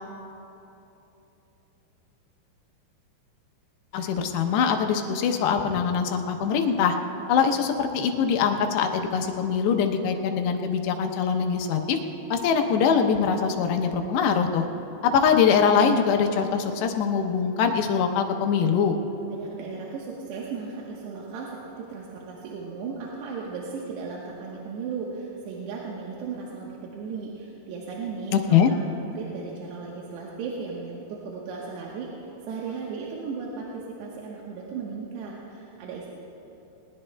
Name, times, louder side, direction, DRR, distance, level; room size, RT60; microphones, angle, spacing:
voice 1, 3.9-7.0 7.3-12.0 12.3-14.7 15.0-19.0 28.3-28.7, left 6 dB, 85° left, 5 dB, 3.0 m, -23 dB
voice 2, 19.3-36.1, right 5 dB, 85° right, -4 dB, 3.3 m, -36 dB
20.0 x 20.0 x 2.2 m, 3.0 s
omnidirectional pair, 4.8 m